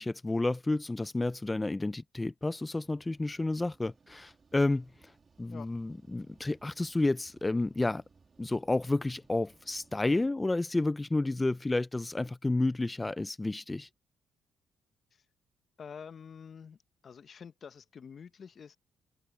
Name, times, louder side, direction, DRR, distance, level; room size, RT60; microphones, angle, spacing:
voice 1, 0.0-5.1 5.4-8.0 8.4-13.9, left 2 dB, 15° left, 0.4 m, -31 dB
sound 1, 2.8-10.3, right 5 dB, 35° right, 2.8 m, -64 dB
voice 2, 15.8-16.8 17.0-18.8, left 6 dB, 50° left, 0.9 m, -47 dB
cardioid pair, 90°, 0 cm